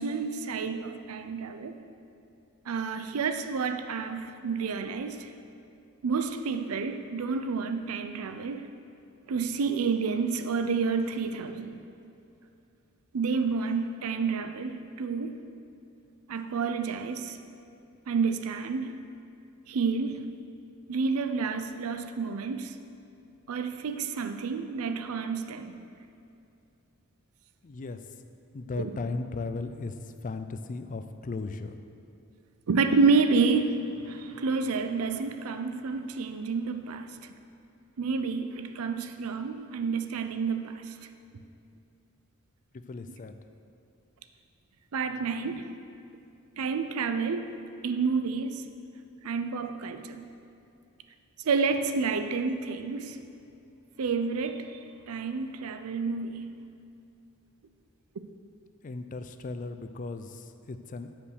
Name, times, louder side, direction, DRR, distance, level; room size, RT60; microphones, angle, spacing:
voice 1, 0.0-1.8 2.7-5.3 6.0-8.7 9.3-11.8 13.1-15.4 16.3-17.4 18.1-19.0 19.7-20.3 20.9-22.7 23.5-25.8 28.8-28.9 32.7-37.1 38.0-40.9 44.9-45.7 46.6-47.5 47.8-48.7 49.2-50.2 51.4-53.2 54.0-54.8 55.1-56.5, right 4 dB, 75° right, 8 dB, 0.5 m, -29 dB
voice 2, 27.6-28.2 28.5-31.8 42.7-43.4 58.8-61.1, left 3 dB, 35° left, 9 dB, 0.4 m, -36 dB
8.3 x 5.1 x 6.4 m, 2.6 s
head